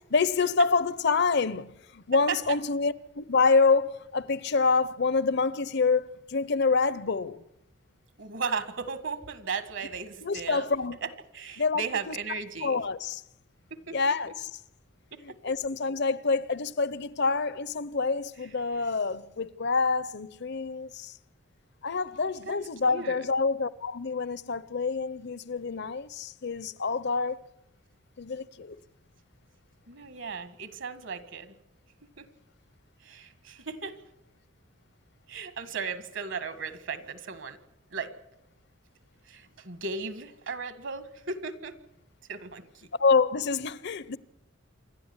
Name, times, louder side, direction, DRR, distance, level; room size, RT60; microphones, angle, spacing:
voice 1, 0.1-7.4 10.2-11.0 11.6-12.2 12.6-13.2 13.9-14.6 15.2-21.2 21.8-27.4 28.2-28.8 43.0-44.2, left 4 dB, 55° left, 0.8 m, -27 dB
voice 2, 8.2-10.7 11.0-12.8 13.7-14.0 15.1-15.2 22.5-22.6 22.9-23.2 29.9-31.5 32.2-32.3 33.0-34.0 35.3-37.6 37.9-38.1 39.3-41.8 42.3-42.7, right 5 dB, 65° right, 1.7 m, -36 dB
27.5 x 12.0 x 9.7 m
head